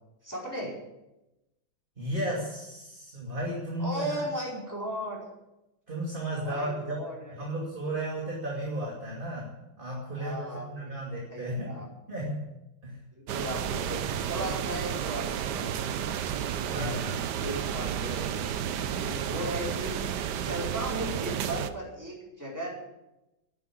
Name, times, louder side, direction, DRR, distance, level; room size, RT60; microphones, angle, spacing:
voice 1, 0.2-0.7 3.8-5.2 6.4-7.5 10.1-10.9 11.3-11.9 13.2-16.1 16.6-16.9 17.4-18.5 18.9-20.0 20.4-22.8, right 1 dB, 10° right, -4 dB, 4.8 m, -36 dB
voice 2, 2.0-4.1 5.9-7.0 7.3-11.8 12.1-12.4 12.8-13.0 16.7-17.2, right 1 dB, 25° right, -3 dB, 2.6 m, -34 dB
sound 1, 13.3-21.7, right 9 dB, 65° right, 1.3 m, -32 dB
11.0 x 10.0 x 9.9 m, 0.95 s
omnidirectional pair, 2.1 m